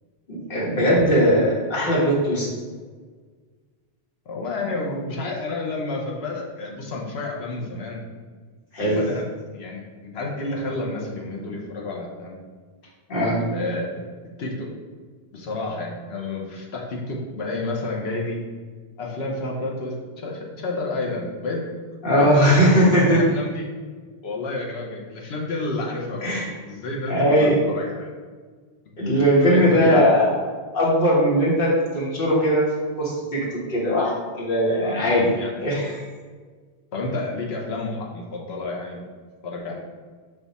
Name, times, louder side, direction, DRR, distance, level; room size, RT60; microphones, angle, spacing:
voice 1, 0.3-2.5 8.7-9.0 13.1-13.4 22.0-23.3 26.2-26.5 27.1-27.6 29.0-30.4 30.7-32.7 33.0-35.3 35.6-36.0, equal, 60° left, -5 dB, 1.4 m, -19 dB
voice 2, 4.3-8.0 8.8-9.2 9.5-12.4 13.2-14.1 14.4-14.7 15.3-18.4 19.0-21.7 22.2-23.7 24.2-26.4 26.7-28.1 29.4-30.2 34.8-35.0 35.3-35.5 36.9-39.0 39.4-39.8, left 2 dB, 80° left, -1 dB, 1.1 m, -30 dB
5.5 x 2.4 x 4.0 m, 1.5 s
omnidirectional pair, 1.0 m